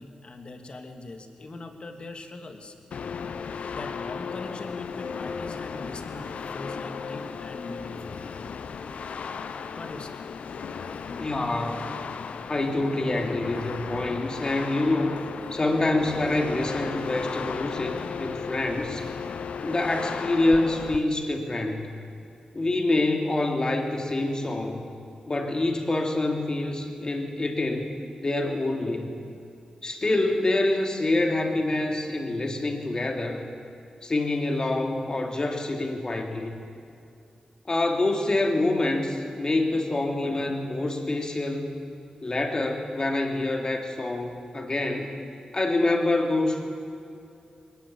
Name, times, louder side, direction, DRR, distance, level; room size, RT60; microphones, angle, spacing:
voice 1, 0.0-2.7 3.7-8.2 9.8-10.2, left 2 dB, 50° left, 5 dB, 2.6 m, -41 dB
sound 1, 2.9-21.0, left 6 dB, 80° left, 0.9 m, -35 dB
voice 2, 11.1-11.8 12.5-15.2 15.5-19.0 19.6-21.9 22.5-24.8 25.3-27.9 28.2-29.1 29.8-33.4 34.0-36.5 37.7-41.7 42.2-45.1 45.5-46.6, left 2 dB, 35° left, 3 dB, 3.2 m, -26 dB
22.0 x 19.5 x 8.7 m, 2.5 s
cardioid pair, 70°, 2 cm